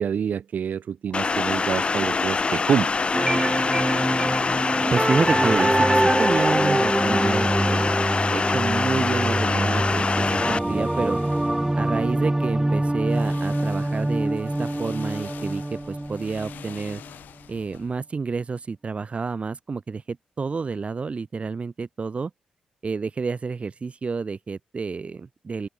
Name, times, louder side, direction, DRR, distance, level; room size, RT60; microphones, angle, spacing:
voice 1, 0.0-3.1, right 8 dB, 65° right, 1.4 m, -26 dB
sound 1, 1.1-10.6, left 4 dB, 35° left, 0.8 m, -24 dB
sound 2, 3.1-17.1, right 1 dB, 10° right, 0.6 m, -24 dB
voice 2, 4.6-8.0 8.3-11.2 11.8-17.0 17.5-22.3 22.8-25.7, right 4 dB, 40° right, 2.2 m, -29 dB
sound 3, 8.1-12.8 13.1-18.0, left 10 dB, 75° left, 7.7 m, -47 dB
open air
supercardioid pair, 55°, 3 cm